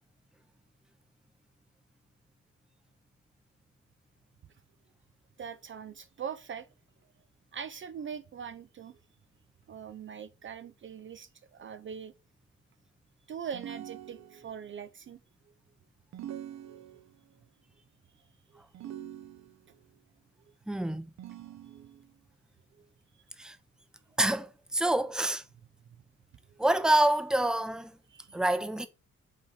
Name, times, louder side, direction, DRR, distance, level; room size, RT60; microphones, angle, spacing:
voice 1, 5.4-6.7 7.5-9.0 9.7-12.1 13.3-15.2 16.6-16.8 18.5-18.9 21.7-21.9 22.8-22.9 28.1-28.4, right 7 dB, 40° right, 0.5 m, -42 dB
sound 1, 13.5-14.7 16.1-17.3 18.7-19.8 21.2-22.2, right 11 dB, 65° right, 0.8 m, -44 dB
voice 2, 20.7-21.1 23.4-23.6 24.2-25.4 26.6-27.9 28.3-28.9, right 1 dB, ahead, 0.7 m, -27 dB
5.7 x 3.3 x 5.5 m
cardioid pair, 90°, 30 cm